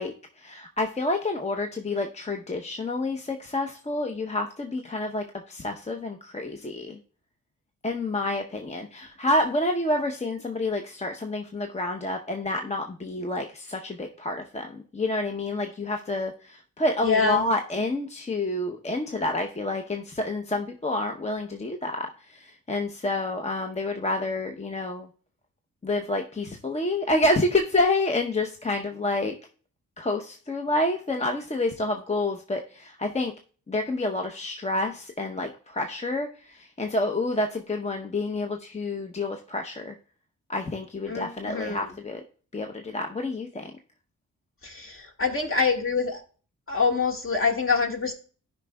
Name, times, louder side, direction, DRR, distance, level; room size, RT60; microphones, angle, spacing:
voice 1, 0.0-7.0 7.8-25.1 25.8-29.3 30.0-33.3 33.7-40.0 40.5-42.2 42.5-43.7, left 2 dB, 20° left, 3 dB, 0.7 m, -28 dB
voice 2, 17.0-17.5 41.1-41.8 44.6-46.2 46.7-48.1, left 4 dB, 40° left, 2 dB, 1.7 m, -25 dB
12.5 x 5.2 x 2.2 m, 0.40 s
cardioid pair, 70°, 33 cm